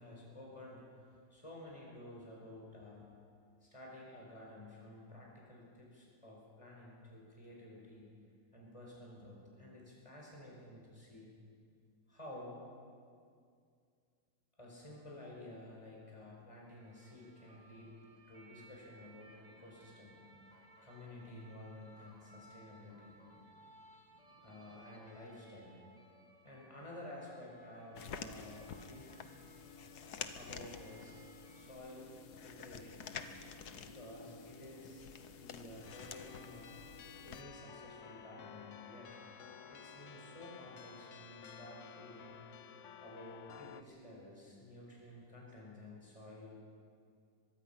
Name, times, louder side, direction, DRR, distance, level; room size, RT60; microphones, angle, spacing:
voice 1, 0.0-3.1 3.6-8.1 8.5-11.3 12.1-12.6 14.6-17.9 18.3-20.2 20.8-23.2 24.4-25.8 26.4-29.1 30.4-31.1 31.5-32.1 32.4-33.2 33.8-35.0 35.4-36.7 37.2-39.2 39.7-42.4 43.0-46.6, left 1 dB, 20° left, -3 dB, 5.1 m, -52 dB
sound 1, 16.6-31.7, right 1 dB, 25° right, 2.0 m, -62 dB
sound 2, 28.0-37.4, left 6 dB, 70° left, 1.5 m, -49 dB
sound 3, 35.8-43.8, left 7 dB, 55° left, 1.0 m, -53 dB
23.5 x 22.0 x 5.8 m, 2.3 s
omnidirectional pair, 1.8 m